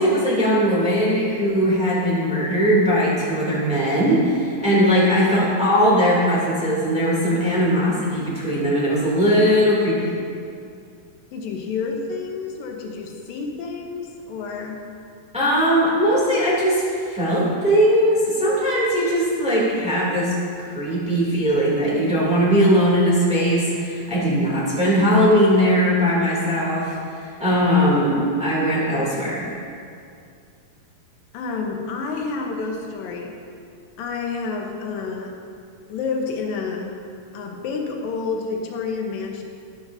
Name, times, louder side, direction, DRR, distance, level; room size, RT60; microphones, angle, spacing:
voice 1, 0.0-10.1 15.3-29.5, equal, ahead, -7 dB, 2.1 m, -19 dB
voice 2, 11.3-14.8 31.3-33.4 34.0-35.4 35.9-37.0 37.3-39.4, left 4 dB, 90° left, 2 dB, 2.7 m, -29 dB
12.0 x 11.5 x 2.7 m, 2.4 s
omnidirectional pair, 3.9 m